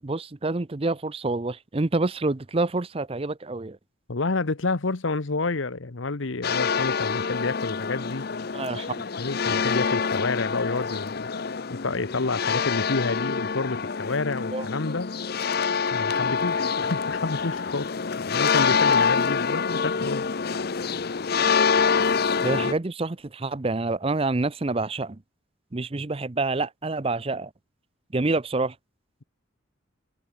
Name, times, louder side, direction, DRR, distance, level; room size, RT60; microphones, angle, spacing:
voice 1, 0.0-3.8 8.5-9.0 14.5-14.7 22.4-25.2 25.7-27.5 28.1-28.7, right 2 dB, 30° right, 0.6 m, -27 dB
voice 2, 4.1-8.2 9.1-11.3 11.7-15.1 15.9-17.9 18.2-20.3, left 3 dB, 70° left, 1.1 m, -29 dB
sound 1, 6.4-22.7, left 5 dB, 50° left, 0.6 m, -26 dB
head